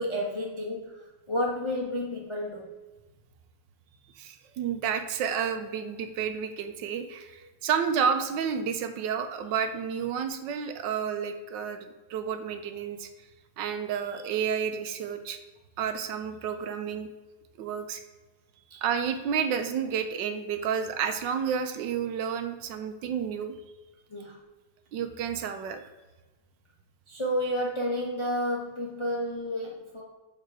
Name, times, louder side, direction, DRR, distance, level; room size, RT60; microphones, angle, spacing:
voice 1, 0.0-2.7 18.7-18.8 24.1-24.4 27.1-30.0, equal, 50° left, -2 dB, 0.3 m, -31 dB
voice 2, 4.2-13.1 13.6-15.4 15.8-17.1 17.6-18.0 18.7-23.6 24.9-25.8, right 7 dB, 85° right, 8 dB, 1.3 m, -30 dB
6.8 x 3.7 x 4.5 m, 1.2 s
omnidirectional pair, 2.0 m